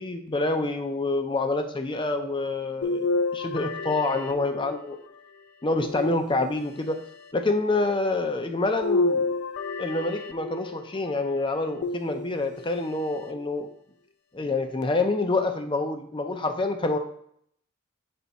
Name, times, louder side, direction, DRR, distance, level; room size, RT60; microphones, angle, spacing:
voice 1, 0.0-3.1 3.3-5.0 5.6-7.0 7.3-9.4 9.8-13.7 14.3-17.0, left 2 dB, 25° left, 6 dB, 0.6 m, -27 dB
sound 1, 2.8-5.1 5.8-6.8 8.8-10.9 11.8-12.7 13.3-13.4 14.8-14.9, left 3 dB, 90° left, 0.5 m, -29 dB
7.0 x 3.5 x 4.2 m, 0.67 s
head